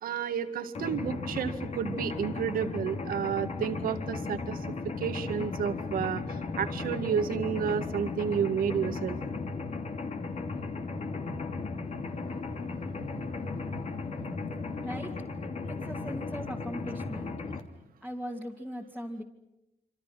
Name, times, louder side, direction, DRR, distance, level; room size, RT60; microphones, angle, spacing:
voice 1, 0.0-4.6 4.8-9.2, right 7 dB, 80° right, 8 dB, 2.1 m, -31 dB
Mechanisms, 0.7-17.6, left 3 dB, 50° left, 2.9 m, -36 dB
voice 2, 15.7-17.3 18.0-19.2, equal, 5° left, -1 dB, 2.6 m, -39 dB
27.5 x 26.5 x 6.0 m, 0.90 s
cardioid pair, 95°, 15 cm